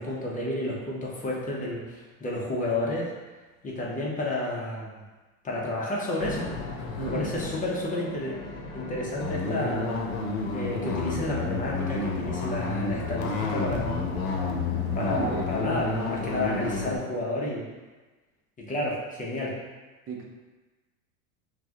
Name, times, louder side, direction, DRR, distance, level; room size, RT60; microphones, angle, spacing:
voice 1, 0.0-3.1 3.6-4.9 5.4-6.5 7.1-8.4 8.7-10.0 10.5-13.9 15.0-17.6 18.6-19.5, left 1 dB, 20° left, -4 dB, 0.9 m, -31 dB
sound 1, 6.2-17.0, left 3 dB, 85° left, 0.9 m, -31 dB
voice 2, 7.0-7.3 15.1-15.7 20.1-20.3, right 4 dB, 30° right, 0 dB, 0.8 m, -34 dB
5.9 x 2.4 x 2.9 m, 1.3 s
supercardioid pair, 125°, 41 cm